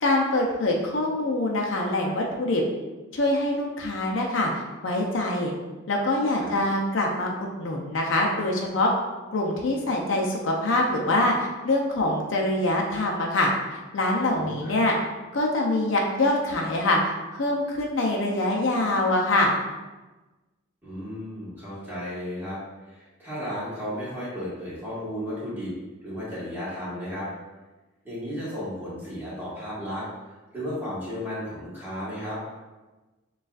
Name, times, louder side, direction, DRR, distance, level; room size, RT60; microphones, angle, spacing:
voice 1, 0.0-2.6 3.1-5.5 5.9-8.9 9.3-13.5 13.9-15.0 15.3-17.0 17.3-19.5, left 1 dB, 70° left, -1 dB, 0.5 m, -24 dB
voice 2, 14.3-14.7 20.8-22.6 22.9-25.7 26.0-27.3 28.0-30.0 30.5-32.4, equal, 10° right, -9 dB, 1.3 m, -34 dB
6.4 x 2.4 x 2.4 m, 1.2 s
head